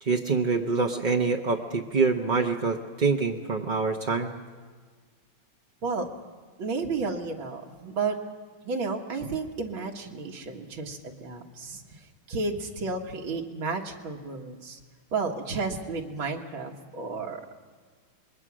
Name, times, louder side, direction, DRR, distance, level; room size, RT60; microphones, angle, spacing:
voice 1, 0.0-4.3, right 4 dB, 40° right, 1 dB, 0.6 m, -25 dB
voice 2, 6.6-8.2 8.6-14.8 15.1-17.4, right 4 dB, 85° right, 1 dB, 2.5 m, -32 dB
26.0 x 21.5 x 6.3 m, 1.5 s
omnidirectional pair, 2.2 m